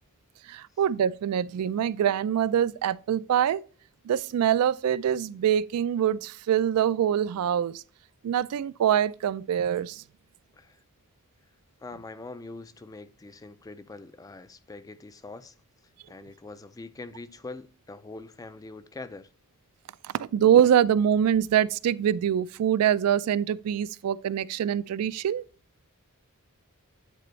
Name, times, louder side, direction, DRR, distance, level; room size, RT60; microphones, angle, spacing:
voice 1, 0.5-3.6 4.0-7.8 8.2-10.0 20.0-25.4, right 9 dB, 85° right, 0.3 m, -24 dB
voice 2, 11.8-15.6 16.1-19.3, left 3 dB, 15° left, 0.3 m, -43 dB
9.2 x 4.3 x 3.1 m
head